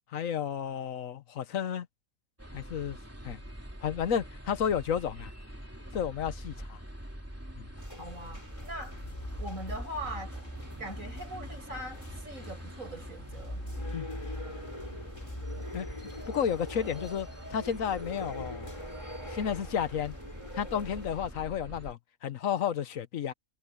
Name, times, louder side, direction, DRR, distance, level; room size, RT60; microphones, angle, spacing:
voice 1, 0.1-1.9 2.5-3.0 3.2-3.4 3.8-5.3 5.9-6.8 7.6-7.7 13.9-14.1 15.7-15.9 16.3-18.7 19.3-20.2 20.5-23.3, left 8 dB, 75° left, 1.3 m, -32 dB
sound 1, 2.4-21.9, equal, 10° right, 3.1 m, -45 dB
sound 2, 7.8-21.3, left 1 dB, 20° left, 4.8 m, -42 dB
voice 2, 8.0-9.0 9.4-10.3 10.8-13.6, right 1 dB, 75° right, 7.4 m, -41 dB
omnidirectional pair, 1.4 m